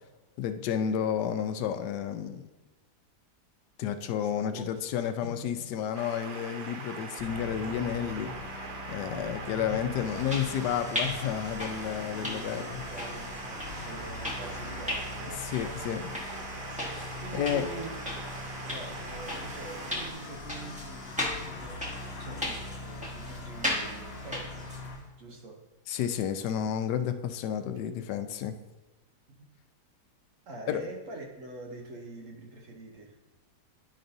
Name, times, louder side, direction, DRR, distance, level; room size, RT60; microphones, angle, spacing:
voice 1, 0.4-2.4 3.8-8.3 8.9-12.8 15.4-16.1 16.9-17.6 25.9-28.6 30.7-30.8, left 9 dB, 80° left, 1.2 m, -31 dB
voice 2, 4.2-5.7 8.6-10.1 12.1-15.8 17.2-18.0 18.7-24.9 25.2-25.6 27.7-28.0 29.3-29.4 30.5-33.2, right 2 dB, 55° right, 1.1 m, -45 dB
sound 1, 5.9-20.1, right 4 dB, 75° right, 0.4 m, -42 dB
sound 2, 7.2-25.0, left 2 dB, 45° left, 1.1 m, -42 dB
sound 3, 10.0-24.9, left 1 dB, 5° right, 1.0 m, -38 dB
10.0 x 5.2 x 2.6 m
omnidirectional pair, 1.8 m